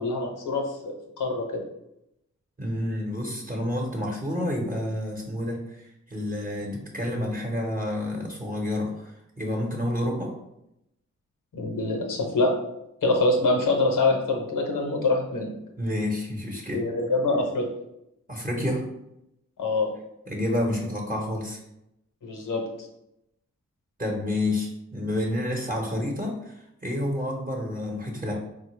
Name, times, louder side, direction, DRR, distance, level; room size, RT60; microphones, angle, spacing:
voice 1, 0.0-1.6 11.5-12.5 13.0-15.5 16.7-17.7 19.6-19.9 22.2-22.6, left 2 dB, 85° left, 1 dB, 0.7 m, -25 dB
voice 2, 2.6-10.3 15.8-16.8 18.3-18.9 20.3-21.6 24.0-28.3, left 1 dB, 30° right, -1 dB, 0.9 m, -29 dB
3.9 x 2.1 x 3.1 m, 0.84 s
cardioid pair, 45°, 31 cm